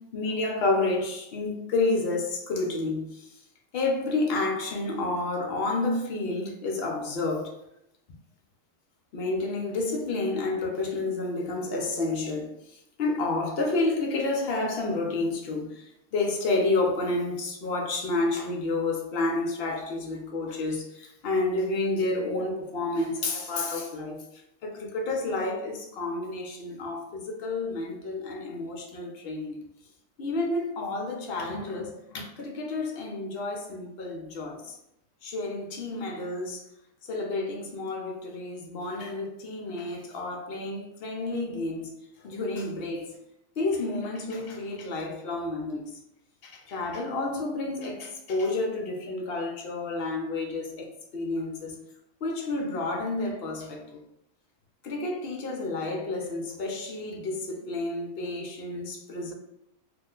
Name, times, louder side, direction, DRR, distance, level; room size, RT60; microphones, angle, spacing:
voice 1, 0.1-3.3 3.7-7.5 9.1-12.5 13.0-15.8 16.1-24.2 24.6-29.6 30.2-34.7 35.2-36.6 37.1-41.9 42.2-43.1 43.6-45.9 46.4-51.7 52.2-54.0 54.8-59.3, left 2 dB, 55° left, 0.7 m, -30 dB
2.9 x 2.1 x 3.6 m
omnidirectional pair, 1.4 m